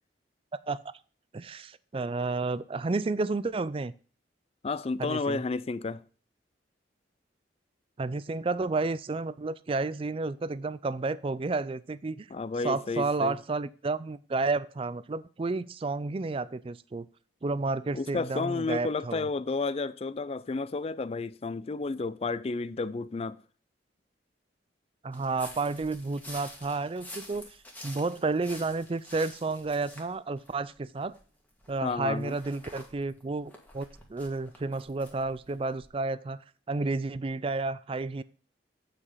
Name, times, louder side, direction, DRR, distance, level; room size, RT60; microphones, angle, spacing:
voice 1, 1.3-3.9 5.0-5.4 8.0-12.3 12.6-17.1 17.4-19.3 25.0-27.5 27.8-31.2 31.7-36.4 36.7-38.2, right 3 dB, 30° right, 0.4 m, -31 dB
voice 2, 4.6-6.0 12.3-13.4 17.9-23.4 31.8-32.3, left 3 dB, 35° left, 0.4 m, -31 dB
sound 1, 25.1-31.2 31.6-35.9, left 1 dB, 10° left, 1.7 m, -48 dB
8.4 x 5.1 x 5.5 m
head